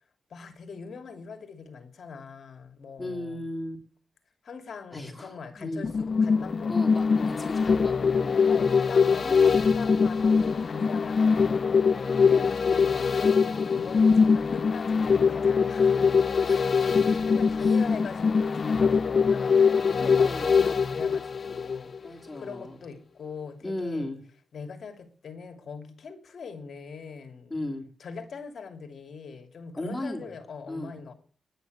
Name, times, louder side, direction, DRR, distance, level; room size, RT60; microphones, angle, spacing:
voice 1, 0.3-3.4 4.4-7.4 8.5-24.1 24.5-27.5 28.0-31.1, left 5 dB, 65° left, 2.7 m, -42 dB
voice 2, 3.0-3.8 4.9-5.9 6.7-8.7 9.2-9.5 9.8-10.1 12.2-12.6 16.5-16.6 17.6-17.8 20.0-20.7 22.0-22.8 23.6-24.2 27.5-27.9 29.8-30.3 30.7-30.9, left 1 dB, 15° left, 3.3 m, -36 dB
sound 1, 5.8-22.1 22.4-22.5, left 5 dB, 50° left, 0.5 m, -23 dB
10.5 x 9.6 x 7.7 m
cardioid pair, 85°, 0 cm